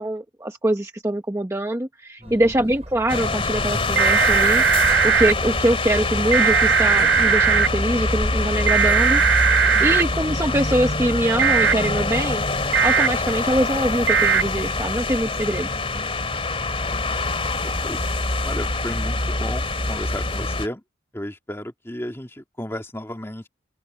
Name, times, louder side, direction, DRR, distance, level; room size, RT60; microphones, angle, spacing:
voice 1, 0.0-4.6 5.0-9.2 9.5-12.4 12.8-15.7, right 1 dB, 15° right, 0.9 m, -23 dB
voice 2, 2.2-2.5 9.7-10.0 15.9-16.2 16.9-17.2 17.6-18.0 18.4-20.8 21.1-23.5, left 1 dB, 10° left, 2.1 m, -34 dB
sound 1, 2.2-8.7, equal, 35° right, 6.0 m, -40 dB
sound 2, 3.1-20.7, left 2 dB, 30° left, 2.7 m, -25 dB
sound 3, 4.0-5.3 6.3-7.7 8.7-10.0 11.4-11.7 12.7-13.1 14.1-14.4, right 7 dB, 60° right, 0.7 m, -18 dB
open air
head